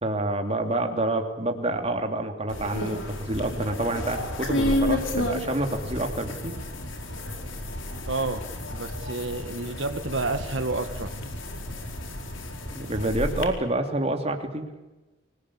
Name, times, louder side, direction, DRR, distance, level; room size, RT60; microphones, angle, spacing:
voice 1, 0.0-6.6 12.7-14.7, right 1 dB, 30° right, 5 dB, 3.0 m, -28 dB
sound 1, 2.5-13.4, left 1 dB, 80° left, 4.6 m, -31 dB
voice 2, 8.1-8.4 8.7-11.1, right 3 dB, 70° right, 7 dB, 1.7 m, -29 dB
26.5 x 19.0 x 8.7 m, 1.1 s
head